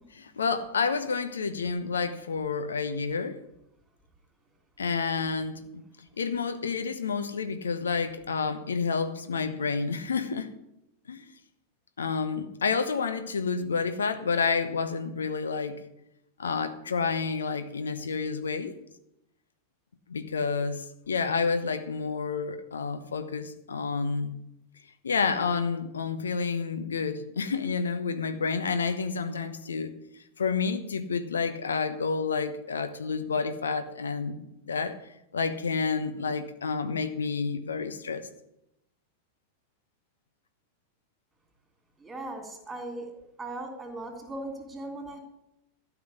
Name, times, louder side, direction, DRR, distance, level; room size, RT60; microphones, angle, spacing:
voice 1, 0.1-3.4 4.8-5.6 6.2-10.5 11.1-11.2 12.0-15.8 16.4-18.7 20.1-24.4 25.0-29.9 30.4-34.4 34.6-35.0 35.3-38.3, left 5 dB, 70° left, 1.0 m, -29 dB
voice 2, 42.0-43.1 43.4-45.2, right 2 dB, 10° right, 3.3 m, -38 dB
13.0 x 6.0 x 9.6 m
figure-of-eight pair, 90°, 0 cm